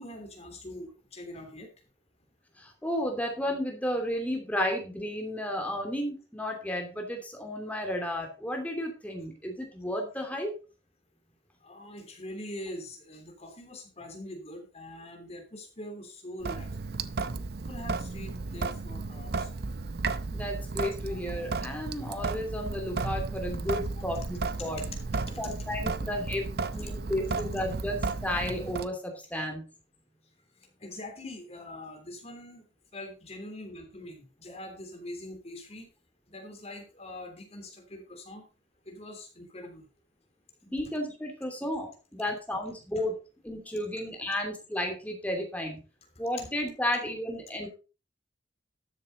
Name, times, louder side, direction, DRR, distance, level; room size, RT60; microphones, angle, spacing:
voice 1, 0.0-1.7 11.6-16.7 17.6-19.5 21.1-21.2 24.8-24.9 25.3-25.4 27.4-27.5 30.8-32.6 32.9-35.9 36.3-38.4 38.9-39.8, left 1 dB, 35° left, 3 dB, 3.2 m, -43 dB
voice 2, 2.6-10.5 20.3-24.8 25.4-26.4 26.7-28.0 28.2-29.6 34.5-34.6 40.6-43.1 43.4-45.8 46.2-47.7, left 1 dB, 10° left, 2 dB, 2.8 m, -33 dB
Sink (filling or washing) / Drip, 16.4-28.9, right 3 dB, 60° right, 0.6 m, -34 dB
13.0 x 7.4 x 4.1 m, 0.33 s
head